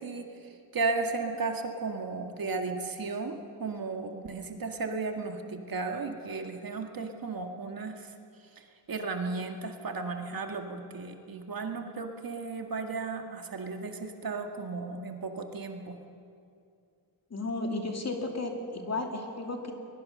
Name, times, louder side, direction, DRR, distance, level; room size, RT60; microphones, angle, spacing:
voice 1, 0.0-8.1 8.6-16.0, right 3 dB, 55° right, 4 dB, 2.0 m, -35 dB
voice 2, 17.3-19.7, left 2 dB, 40° left, 2 dB, 2.7 m, -33 dB
21.5 x 21.0 x 6.7 m, 2.4 s
wide cardioid pair, 100°, 41 cm